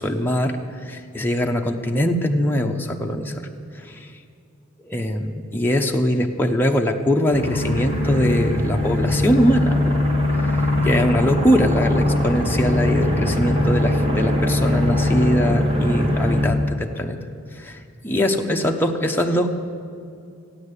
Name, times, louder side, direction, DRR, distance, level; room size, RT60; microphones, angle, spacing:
voice 1, 0.0-3.5 3.7-4.1 4.8-10.0 10.5-17.2 17.5-19.5, equal, 10° left, 2 dB, 0.8 m, -22 dB
sound 1, 7.3-16.5, left 1 dB, 30° right, 2.0 m, -21 dB
15.0 x 9.8 x 8.2 m, 2.4 s
head